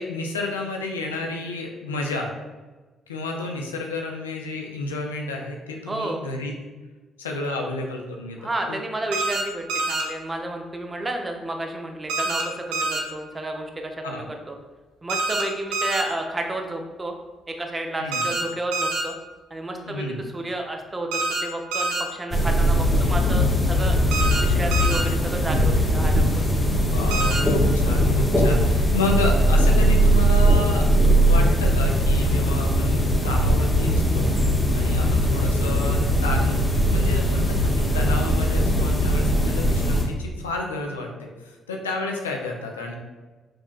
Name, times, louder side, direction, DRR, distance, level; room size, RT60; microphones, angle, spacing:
voice 1, 0.0-2.3 3.1-6.5 7.2-8.4 8.7-8.8 14.0-14.3 18.0-18.2 19.9-20.2 26.9-30.9 31.2-34.3 34.7-43.0, left 2 dB, 85° left, 1 dB, 0.4 m, -30 dB
voice 2, 5.9-6.2 8.4-14.6 15.0-17.1 17.5-19.2 19.5-24.0 24.4-26.3, right 2 dB, 25° right, 3 dB, 0.6 m, -31 dB
sound 1, 9.1-9.4 9.7-10.0 12.1-12.4 12.7-13.0 15.1-15.4 15.7-16.0 18.1-18.4 18.7-19.0 21.1-21.4 21.7-22.0 24.1-24.4 24.7-25.0 27.1-27.4, right 3 dB, 75° right, 0.5 m, -25 dB
sound 2, 22.3-40.0, equal, 15° left, 1.0 m, -20 dB
5.0 x 2.7 x 2.3 m, 1.2 s
figure-of-eight pair, 45°, 0 cm